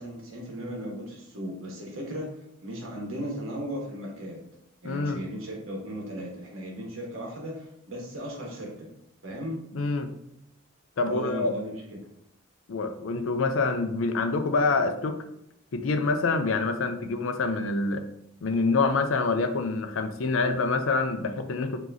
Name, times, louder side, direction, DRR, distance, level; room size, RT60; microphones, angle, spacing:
voice 1, 0.0-2.3 2.6-4.4 4.8-8.9 9.2-9.6 11.0-12.1, equal, 85° right, -1 dB, 1.2 m, -36 dB
voice 2, 4.8-5.2 9.7-10.1 11.0-11.5 12.7-15.2 15.7-18.0 18.4-21.8, left 3 dB, 70° left, 7 dB, 0.5 m, -26 dB
4.8 x 2.9 x 2.6 m, 0.79 s
head